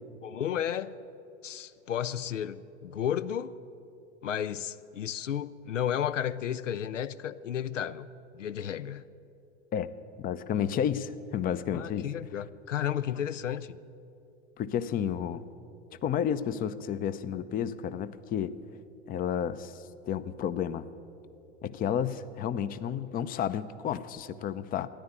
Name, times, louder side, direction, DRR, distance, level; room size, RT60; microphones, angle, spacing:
voice 1, 0.2-1.0 1.4-3.5 4.2-8.1 8.3-9.0 11.7-13.8, left 9 dB, 85° left, 15 dB, 0.6 m, -33 dB
voice 2, 10.2-12.1 14.6-15.4 16.0-18.6 19.1-20.9 21.6-24.9, left 9 dB, 25° left, 14 dB, 0.6 m, -31 dB
13.5 x 10.5 x 9.6 m, 2.7 s
hypercardioid pair, 95°, 36 cm